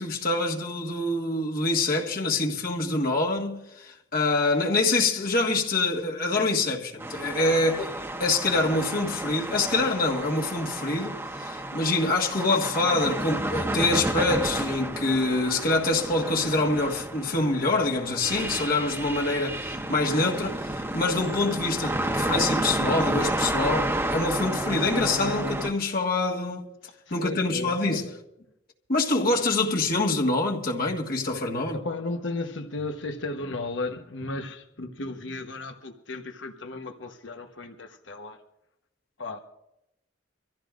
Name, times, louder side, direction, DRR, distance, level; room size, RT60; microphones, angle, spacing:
voice 1, 0.0-26.7 27.1-28.1 28.9-31.8, left 2 dB, 50° left, 1.7 m, -25 dB
sound 1, 7.0-25.7, right 1 dB, 15° right, 1.0 m, -31 dB
voice 2, 27.2-28.2 31.7-38.4 39.2-39.4, left 2 dB, 85° left, 1.1 m, -35 dB
25.5 x 15.0 x 2.5 m
head